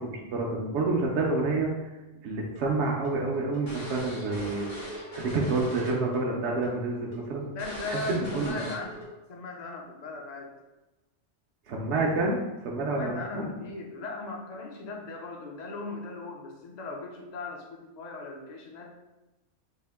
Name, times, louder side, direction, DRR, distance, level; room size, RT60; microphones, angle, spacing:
voice 1, 0.0-1.7 2.2-4.7 5.1-7.5 7.9-8.5 11.7-12.4 12.6-13.5, right 3 dB, 70° right, -2 dB, 0.8 m, -28 dB
sound 1, 2.6-6.2 6.4-6.7 7.1-7.2 7.6-9.0, left 1 dB, 80° left, 1.6 m, -39 dB
voice 2, 7.5-9.0 9.3-10.5 12.8-18.9, left 3 dB, 50° left, 1 dB, 0.5 m, -38 dB
3.5 x 2.5 x 3.4 m, 1.1 s
omnidirectional pair, 1.2 m